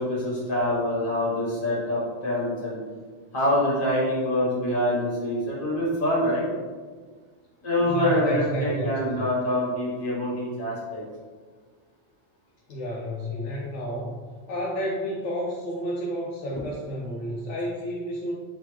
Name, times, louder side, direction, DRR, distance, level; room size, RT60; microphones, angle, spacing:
voice 1, 0.0-2.8 3.3-6.4 7.6-11.0, left 1 dB, 50° left, -6 dB, 1.6 m, -25 dB
voice 2, 7.9-9.3 12.7-14.1 14.5-18.4, equal, 80° left, -3 dB, 1.0 m, -31 dB
4.3 x 3.2 x 3.2 m, 1.5 s
omnidirectional pair, 1.2 m